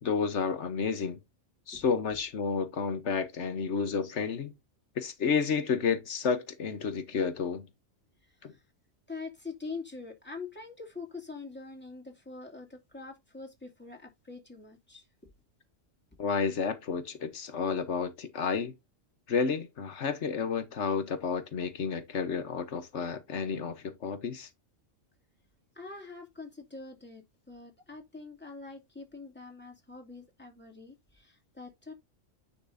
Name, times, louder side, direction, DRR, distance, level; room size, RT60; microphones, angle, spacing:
voice 1, 0.0-1.2 1.7-4.5 5.0-7.7 8.4-8.5 16.2-18.7 19.3-24.5, left 5 dB, 60° left, 1.3 m, -31 dB
voice 2, 1.7-2.2 8.2-8.6 9.1-15.3 25.7-31.9, left 4 dB, 10° left, 2.5 m, -44 dB
9.9 x 5.8 x 2.6 m
omnidirectional pair, 1.4 m